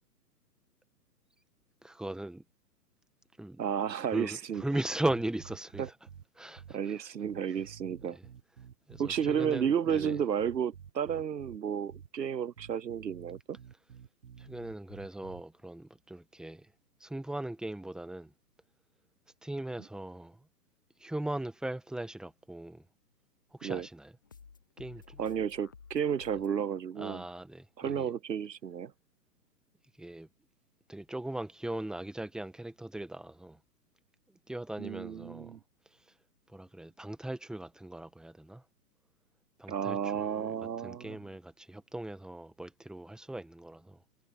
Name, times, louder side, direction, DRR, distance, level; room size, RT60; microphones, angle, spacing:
voice 1, 1.8-2.4 3.4-3.6 4.1-6.0 6.4-7.1 8.1-8.3 8.9-10.2 14.4-16.7 17.0-18.3 19.4-20.5 21.0-22.9 23.5-24.1 24.8-25.2 27.0-28.1 30.0-30.3 30.9-33.6 34.5-35.6 35.9-36.0 36.5-38.6 39.6-40.6 40.8-44.0, right 1 dB, ahead, 1.7 m, -39 dB
voice 2, 3.6-4.6 5.8-5.9 6.7-8.2 9.0-13.6 23.6-23.9 25.2-27.2 27.8-28.9 34.8-35.6 39.7-41.1, right 8 dB, 85° right, 0.8 m, -32 dB
sound 1, 5.1-6.2 6.6-6.7 7.2-10.1 10.4-11.6 11.9-12.1 12.6-15.4, right 8 dB, 60° right, 6.3 m, -50 dB
sound 2, 24.2-26.6, left 5 dB, 15° left, 0.4 m, -54 dB
figure-of-eight pair, 130°, 48 cm